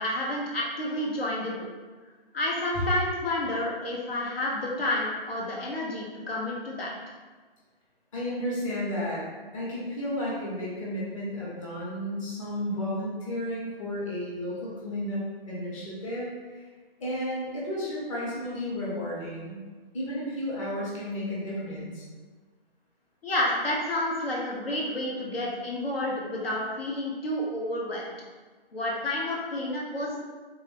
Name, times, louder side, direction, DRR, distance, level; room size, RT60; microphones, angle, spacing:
voice 1, 0.0-1.7 2.3-6.9 23.2-28.1 28.7-30.2, left 1 dB, 75° left, -4 dB, 1.0 m, -30 dB
voice 2, 8.1-9.2 9.5-16.6 17.0-19.6 19.9-22.0, left 1 dB, 35° left, -6 dB, 1.2 m, -33 dB
3.6 x 2.8 x 3.4 m, 1.4 s
hypercardioid pair, 155°, 30 cm